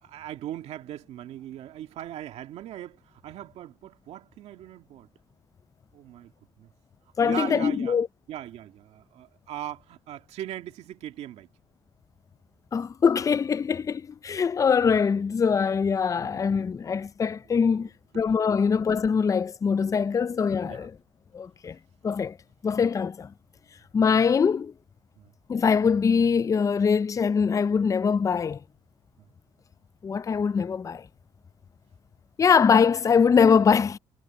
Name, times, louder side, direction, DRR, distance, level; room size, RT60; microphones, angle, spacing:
voice 1, 0.0-5.1 5.9-6.3 6.6-6.7 7.2-8.0 8.3-11.5 16.2-16.4 17.7-17.9 18.5-18.6 20.6-20.9 25.2-25.3, right 12 dB, 80° right, 2.1 m, -39 dB
voice 2, 7.2-8.1 12.7-17.9 18.1-20.9 21.3-21.8 22.0-22.4 22.6-23.3 23.9-24.7 25.5-28.6 30.0-31.1 32.4-34.0, left 6 dB, 30° left, 0.4 m, -23 dB
cardioid pair, 90°, 11 cm